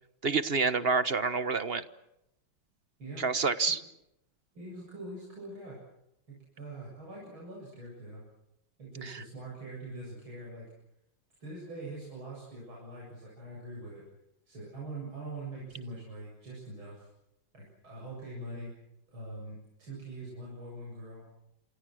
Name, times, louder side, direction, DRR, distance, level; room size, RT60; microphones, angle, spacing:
voice 1, 0.2-1.8 3.2-3.8, right 4 dB, 35° right, 12 dB, 1.1 m, -28 dB
voice 2, 4.5-5.8 6.3-8.2 8.8-10.7 11.4-14.0 14.5-17.1 17.5-18.7 19.1-21.3, right 2 dB, 80° right, -4 dB, 8.8 m, -43 dB
28.5 x 27.5 x 6.4 m, 0.85 s
omnidirectional pair, 2.2 m